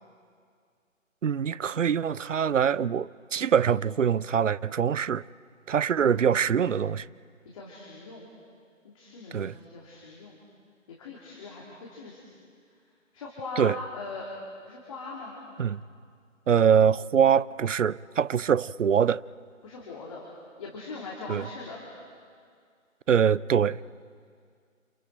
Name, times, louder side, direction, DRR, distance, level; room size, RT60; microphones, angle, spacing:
voice 1, 1.2-5.3 5.7-7.1 9.3-9.6 13.6-13.8 15.6-15.8 16.5-19.2 21.3-21.5 23.1-23.8, right 7 dB, 65° right, 0.6 m, -24 dB
voice 2, 5.9-6.3 7.5-8.2 8.8-10.4 11.0-12.2 13.1-14.3 14.6-15.4 19.6-20.2 20.6-21.8, left 3 dB, 25° left, 2.9 m, -40 dB
29.5 x 29.5 x 4.5 m
figure-of-eight pair, 155°, 41 cm